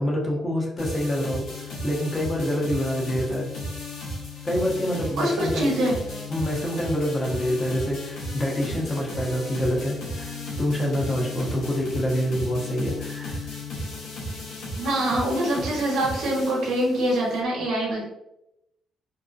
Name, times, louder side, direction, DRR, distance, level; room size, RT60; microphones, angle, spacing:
voice 1, 0.0-1.5 1.8-3.5 4.4-5.8 6.3-13.4, equal, 30° left, -2 dB, 0.7 m, -26 dB
sound 1, 0.7-15.3, left 8 dB, 45° left, 1.0 m, -39 dB
sound 2, 0.8-17.4, equal, 80° left, 0.8 m, -36 dB
voice 2, 5.2-6.0 14.8-18.0, right 1 dB, 80° right, -3 dB, 0.8 m, -24 dB
2.6 x 2.0 x 2.4 m, 0.85 s
cardioid pair, 90°, 0 cm